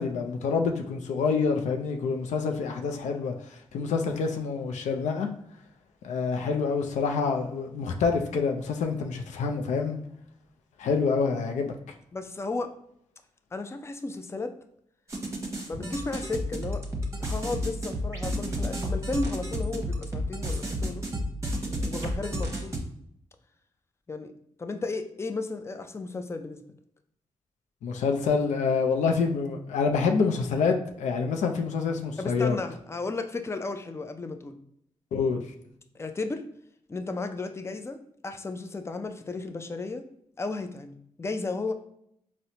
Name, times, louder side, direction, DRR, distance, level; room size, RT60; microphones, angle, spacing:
voice 1, 0.0-3.3 3.7-5.3 6.0-10.0 10.8-11.7 27.8-32.6 35.1-35.4, left 5 dB, 90° left, 4 dB, 0.4 m, -27 dB
voice 2, 12.1-12.7 13.5-14.5 15.7-16.8 17.2-21.0 21.6-22.7 24.1-24.3 24.6-26.6 32.2-34.6 35.9-36.4 36.9-40.0 40.4-41.7, left 3 dB, 20° left, 7 dB, 0.4 m, -34 dB
sound 1, 15.1-22.8, equal, 25° right, 0.8 m, -31 dB
4.1 x 2.1 x 2.7 m, 0.72 s
cardioid pair, 55°, 12 cm